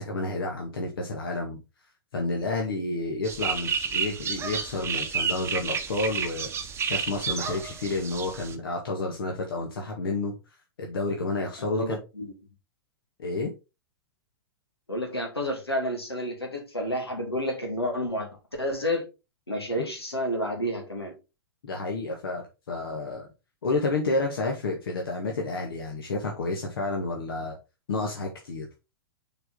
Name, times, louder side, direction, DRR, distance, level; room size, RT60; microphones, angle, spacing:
voice 1, 0.0-1.6 2.1-6.5 6.9-10.3 10.8-12.0 13.2-13.5 21.6-23.3 23.6-27.6 27.9-28.7, left 2 dB, 65° left, 1 dB, 1.7 m, -30 dB
sound 1, 3.2-8.5, right 6 dB, 20° right, 1.0 m, -31 dB
voice 2, 11.6-12.3 14.9-18.3 18.6-19.0 19.5-21.2, equal, 90° left, 2 dB, 2.6 m, -30 dB
6.6 x 4.4 x 3.9 m, 0.28 s
figure-of-eight pair, 100°, 13 cm